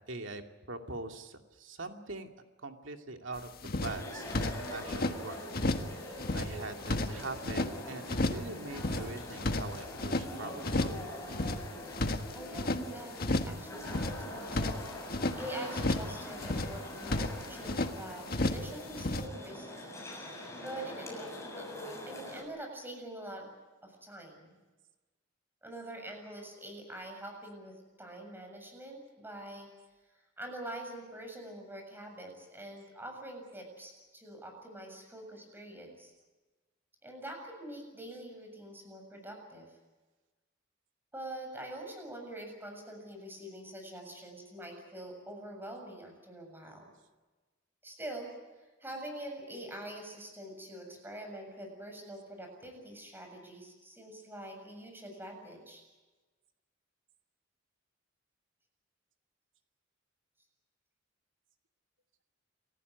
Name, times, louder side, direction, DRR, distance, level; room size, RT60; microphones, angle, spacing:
voice 1, 0.1-0.4 0.7-2.3 2.6-5.4 6.0-10.9, right 2 dB, 70° right, 4 dB, 2.6 m, -43 dB
sound 1, 3.4-3.5 3.6-5.2 5.5-5.9 6.2-7.7 8.1-8.5 8.7-10.3 10.6-11.0 11.3-12.8 13.2-13.6 13.8-15.4 15.7-16.1 16.4-17.9 18.3-18.7 18.9-19.3, left 2 dB, 50° left, 1.6 m, -32 dB
sound 2, 3.8-22.4, left 1 dB, 15° left, 7.1 m, -43 dB
voice 2, 12.3-21.3 21.6-21.7 22.1-23.5 23.8-24.6 25.6-29.7 30.1-36.1 37.0-39.8 41.1-46.9 47.8-55.8, right 1 dB, 10° right, 3 dB, 7.3 m, -45 dB
29.0 x 15.0 x 9.4 m, 1.2 s
head